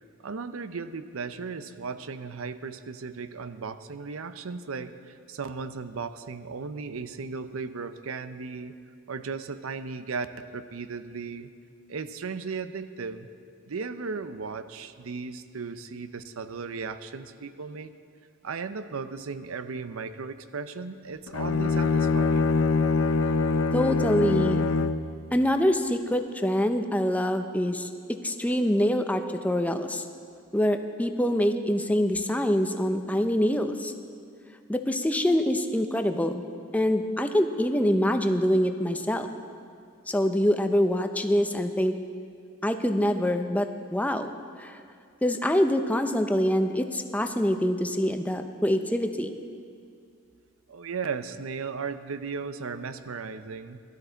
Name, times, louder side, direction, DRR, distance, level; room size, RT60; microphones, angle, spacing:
voice 1, 0.2-8.8 9.1-11.5 11.9-13.3 13.7-17.9 18.4-22.5 50.7-53.8, right 5 dB, 85° right, 11 dB, 0.6 m, -36 dB
Bowed string instrument, 21.3-25.1, left 4 dB, 75° left, 0.5 m, -24 dB
voice 2, 23.7-24.6 25.3-27.9 28.2-30.0 30.5-33.9 34.7-36.4 36.7-39.3 40.1-41.9 42.6-44.3 44.6-44.8 45.2-49.3, equal, 5° left, 7 dB, 0.6 m, -25 dB
17.0 x 12.5 x 4.0 m, 2.3 s
head